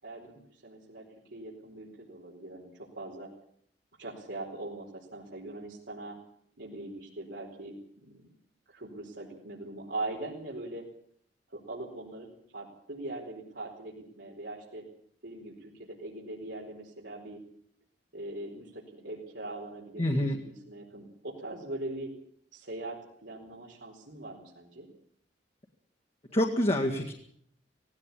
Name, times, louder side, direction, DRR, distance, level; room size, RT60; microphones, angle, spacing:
voice 1, 0.0-3.3 4.0-6.1 6.6-8.2 8.7-10.8 11.5-12.3 12.5-14.8 15.2-17.4 18.1-22.1 22.5-24.9, right 2 dB, 90° right, -4 dB, 4.5 m, -41 dB
voice 2, 20.0-20.4 26.3-27.1, left 1 dB, 35° left, 1 dB, 1.9 m, -26 dB
18.0 x 17.0 x 8.6 m, 0.63 s
head